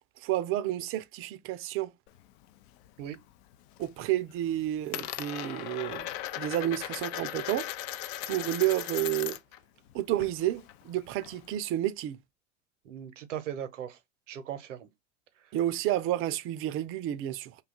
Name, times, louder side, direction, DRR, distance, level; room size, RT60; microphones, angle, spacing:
voice 1, 0.2-1.9 3.8-6.1 6.4-7.7 8.3-9.4 9.9-12.2 15.5-17.6, right 13 dB, 40° right, 0.4 m, -30 dB
Coin (dropping), 2.1-3.2 3.5-4.0 4.3-9.6 9.9-11.6, left 13 dB, 60° left, 0.4 m, -38 dB
voice 2, 12.8-14.0 14.3-14.9 15.4-15.5, right 10 dB, 80° right, 0.7 m, -38 dB
2.7 x 2.3 x 3.7 m
hypercardioid pair, 80°, 36 cm